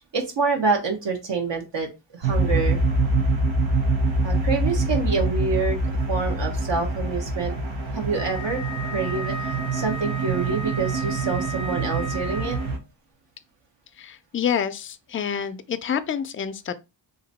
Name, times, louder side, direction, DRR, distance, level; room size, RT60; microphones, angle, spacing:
voice 1, 0.1-2.8 4.2-5.8 6.1-7.6 7.9-12.6, right 4 dB, 65° right, 1.2 m, -27 dB
sound 1, 2.2-12.8, right 2 dB, 90° right, 0.9 m, -25 dB
Wind instrument woodwind instrument, 8.1-12.8, left 1 dB, 40° right, 1.0 m, -35 dB
voice 2, 14.0-16.7, left 8 dB, 30° left, 0.4 m, -28 dB
2.9 x 2.6 x 4.0 m
wide cardioid pair, 85°, 46 cm